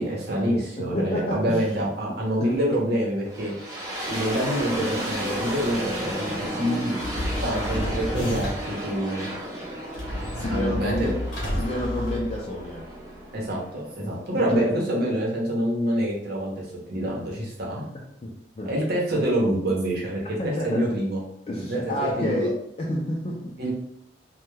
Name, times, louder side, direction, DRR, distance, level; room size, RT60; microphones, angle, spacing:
voice 1, 0.0-3.5 4.1-6.9 7.4-9.3 10.5-11.1 13.3-17.8 18.6-21.2 21.7-22.5 23.6-23.8, right 1 dB, 55° right, -3 dB, 0.8 m, -26 dB
voice 2, 0.8-1.6 2.4-2.5 10.3-11.2 11.6-12.8 14.5-14.6 18.2-18.3 18.6-18.7 20.4-20.8 21.5-23.5, left 1 dB, 35° left, -4 dB, 0.4 m, -29 dB
sound 1, 3.2-14.2, equal, 20° right, 0.6 m, -33 dB
sound 2, 7.0-8.8 9.9-12.8, left 1 dB, 85° left, 0.8 m, -31 dB
2.2 x 2.2 x 3.1 m, 0.73 s
head